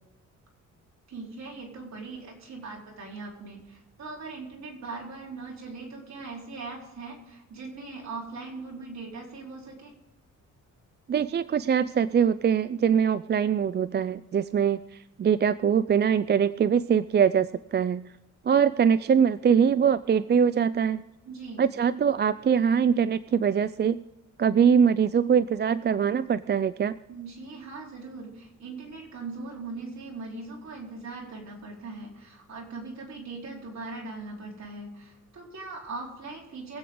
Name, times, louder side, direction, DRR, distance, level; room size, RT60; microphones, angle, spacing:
voice 1, 1.1-9.9 21.2-21.6 27.1-36.8, right 3 dB, 55° right, -1 dB, 4.5 m, -40 dB
voice 2, 11.1-18.1 18.4-21.0 21.6-24.0 24.4-26.9, right 7 dB, 35° right, 15 dB, 0.4 m, -23 dB
23.0 x 8.4 x 3.9 m, 1.0 s
cardioid pair, 90°, 32 cm